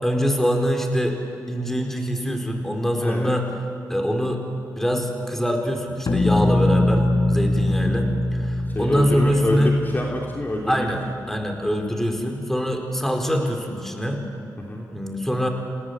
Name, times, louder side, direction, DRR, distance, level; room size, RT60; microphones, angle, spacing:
voice 1, 0.0-1.2 1.5-3.5 3.9-4.4 4.8-9.7 10.7-11.0 11.3-14.2 14.9-15.5, equal, 5° left, 3 dB, 4.7 m, -24 dB
voice 2, 3.0-3.4 8.7-10.9 14.6-14.9, left 1 dB, 25° left, -1 dB, 3.0 m, -26 dB
sound 1, 6.1-11.0, left 1 dB, 50° left, 2.3 m, -23 dB
28.0 x 18.5 x 8.5 m, 2.6 s
cardioid pair, 60°, 7 cm